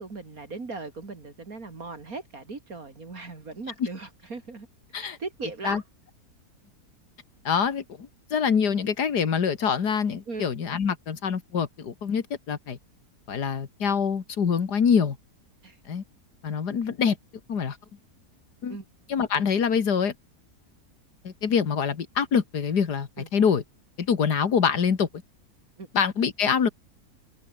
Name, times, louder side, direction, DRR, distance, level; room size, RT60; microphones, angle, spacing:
voice 1, 0.0-5.8 10.3-10.4 15.6-15.8 18.7-18.8 23.2-23.3 25.8-25.9, right 3 dB, 60° right, 3.3 m, -38 dB
voice 2, 7.4-12.8 13.3-15.2 15.9-16.0 16.4-17.2 17.5-17.8 18.6-18.8 19.1-20.1 21.2-23.6 24.0-25.1 25.9-26.7, left 6 dB, 85° left, 2.4 m, -25 dB
omnidirectional pair, 1.7 m